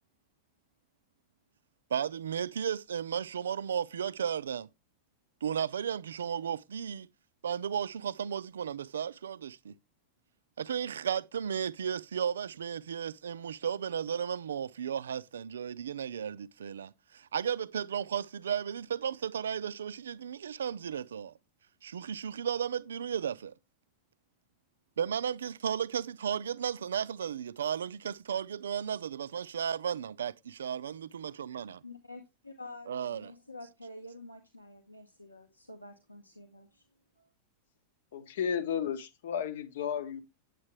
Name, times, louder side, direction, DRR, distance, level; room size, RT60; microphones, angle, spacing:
voice 1, 1.9-4.7 5.4-7.1 7.4-9.7 10.6-21.3 21.8-23.5 25.0-30.3 30.6-31.8 32.9-33.3, right 8 dB, 65° right, 0.4 m, -34 dB
voice 2, 31.8-36.8 37.2-37.3, left 2 dB, 90° left, 1.1 m, -49 dB
voice 3, 38.1-40.2, left 8 dB, 60° left, 0.9 m, -33 dB
8.6 x 8.3 x 3.1 m
figure-of-eight pair, 90°, 0 cm